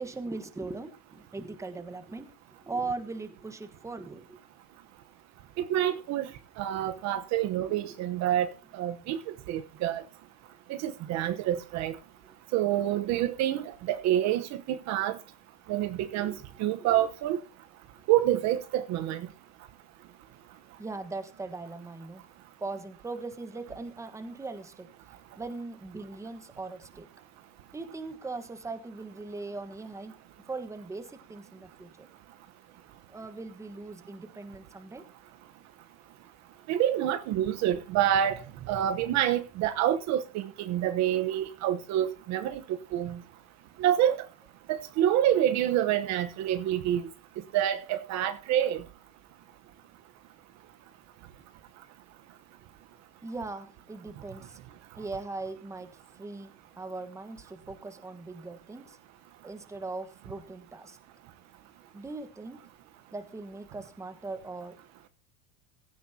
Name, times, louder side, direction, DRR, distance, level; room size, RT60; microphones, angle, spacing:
voice 1, 0.0-2.3 2.6-4.4 7.5-8.0 9.1-9.2 16.1-16.4 16.8-17.1 20.8-22.2 22.6-24.9 25.3-27.1 27.7-30.1 30.5-31.9 33.1-35.0 53.2-54.6 55.0-55.9 56.1-59.0 59.4-61.0 61.9-62.6 63.1-64.8, right 3 dB, 10° right, 1.3 m, -39 dB
voice 2, 5.6-6.3 6.6-9.2 9.5-10.0 10.7-12.0 12.5-15.2 15.7-16.3 16.6-17.4 18.1-19.3 36.7-38.4 38.7-42.6 42.9-43.2 43.8-44.2 44.7-47.0 47.5-48.8, right 11 dB, 45° right, 1.1 m, -27 dB
16.0 x 13.5 x 2.8 m
supercardioid pair, 145°, 37 cm